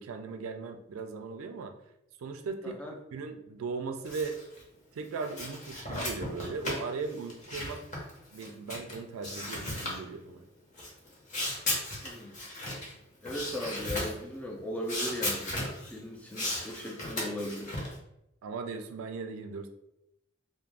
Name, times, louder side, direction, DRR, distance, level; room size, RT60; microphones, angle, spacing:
voice 1, 0.0-1.7 2.2-2.8 3.1-4.4 4.9-7.8 8.3-10.4 18.4-19.7, right 4 dB, 90° right, 6 dB, 0.4 m, -38 dB
voice 2, 2.6-2.9 12.0-12.4 13.2-15.6 15.9-17.8, left 1 dB, 5° left, 0 dB, 0.3 m, -38 dB
sound 1, 4.0-4.6 5.0-9.0 9.2-10.0 10.8-12.9 13.2-14.2 14.8-16.0 16.3-18.0, left 1 dB, 35° left, 0.7 m, -36 dB
2.4 x 2.0 x 3.2 m, 0.83 s
head